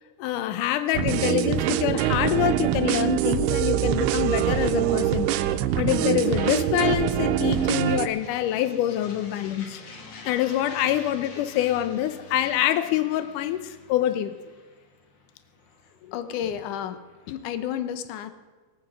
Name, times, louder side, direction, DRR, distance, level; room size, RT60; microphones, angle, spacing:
voice 1, 0.2-5.5 5.8-9.8 10.3-14.3 16.0-16.1, left 12 dB, 90° left, 12 dB, 1.8 m, -25 dB
sound 1, 0.9-8.1, right 12 dB, 85° right, 2.6 m, -24 dB
sound 2, 2.7-17.6, left 3 dB, 60° left, 1.2 m, -48 dB
voice 2, 16.1-17.0 17.3-18.3, left 9 dB, 75° left, 11 dB, 1.9 m, -31 dB
20.0 x 9.0 x 6.2 m, 1.4 s
omnidirectional pair, 4.5 m